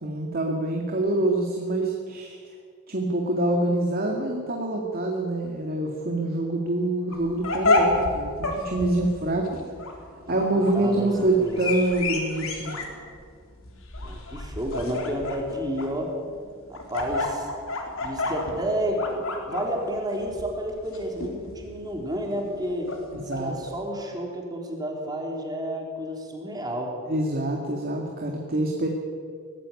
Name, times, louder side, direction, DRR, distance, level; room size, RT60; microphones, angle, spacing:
voice 1, 0.0-2.4 2.9-9.6 10.3-12.7 23.1-23.5 27.1-28.9, right 2 dB, 45° right, 1 dB, 2.1 m, -26 dB
sound 1, 7.1-23.7, left 2 dB, 70° left, 3.9 m, -30 dB
voice 2, 10.3-11.6 14.0-16.1 16.7-17.5 18.0-22.9 23.4-26.9, equal, 20° right, 1 dB, 3.7 m, -31 dB
20.0 x 15.0 x 9.9 m, 2.1 s
head